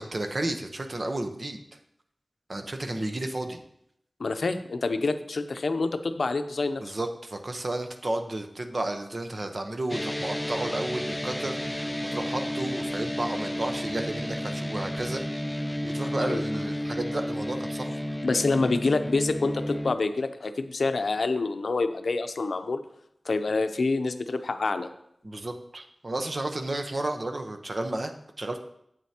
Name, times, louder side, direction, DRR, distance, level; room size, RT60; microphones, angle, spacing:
voice 1, 0.0-1.6 2.5-3.6 6.8-18.2 25.2-28.6, right 2 dB, 50° right, 6 dB, 0.8 m, -32 dB
voice 2, 4.2-6.8 16.2-16.4 18.2-22.8 23.3-24.9, left 3 dB, 85° left, 9 dB, 0.5 m, -27 dB
sound 1, 9.9-19.9, left 1 dB, 10° left, 0.4 m, -32 dB
9.2 x 7.8 x 2.8 m, 0.74 s
wide cardioid pair, 65°, 0 cm